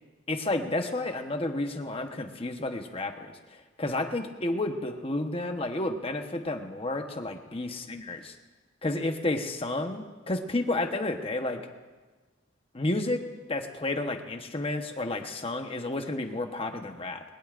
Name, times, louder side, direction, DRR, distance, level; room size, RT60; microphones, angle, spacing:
voice 1, 0.3-3.4 3.8-8.2 8.8-11.6 12.7-13.2 13.5-17.2, left 2 dB, 30° left, 5 dB, 1.1 m, -31 dB
21.0 x 19.0 x 2.5 m, 1.3 s
head